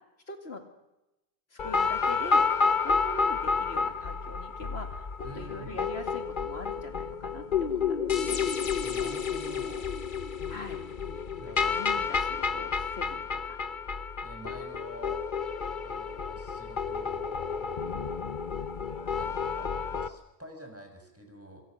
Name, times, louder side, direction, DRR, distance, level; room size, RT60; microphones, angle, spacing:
voice 1, 0.3-0.7 1.5-8.4 10.5-10.8 11.5-13.6, left 2 dB, 80° left, 6 dB, 2.7 m, -43 dB
sound 1, 1.6-20.1, left 5 dB, 50° left, 1.2 m, -30 dB
voice 2, 5.2-5.8 8.8-9.9 11.4-12.2 14.2-15.2 15.8-18.2 19.0-21.6, right 1 dB, 15° right, 3 dB, 6.4 m, -47 dB
27.5 x 27.0 x 6.5 m, 0.96 s
omnidirectional pair, 1.1 m